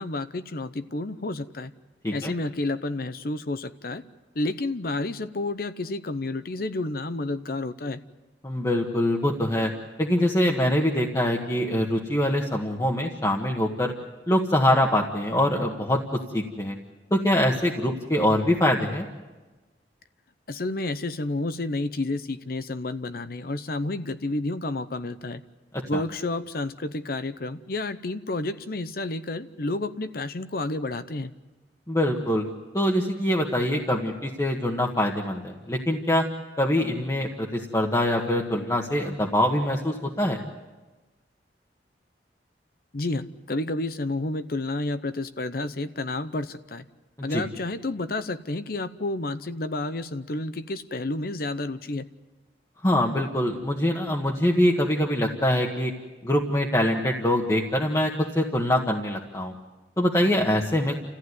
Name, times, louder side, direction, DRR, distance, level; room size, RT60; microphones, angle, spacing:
voice 1, 0.0-1.7 2.1-4.0 4.3-8.0 20.5-25.4 25.9-31.3 42.9-46.8 47.2-52.1, left 2 dB, 55° left, 12 dB, 0.8 m, -30 dB
voice 2, 8.4-9.7 10.0-13.9 14.3-16.0 16.3-16.7 17.1-19.1 25.7-26.0 31.9-32.4 32.7-36.2 36.6-40.4 47.3-47.4 52.8-55.9 56.2-59.5 60.0-60.9, left 1 dB, 20° left, -1 dB, 1.5 m, -24 dB
29.5 x 15.0 x 9.6 m, 1.2 s
head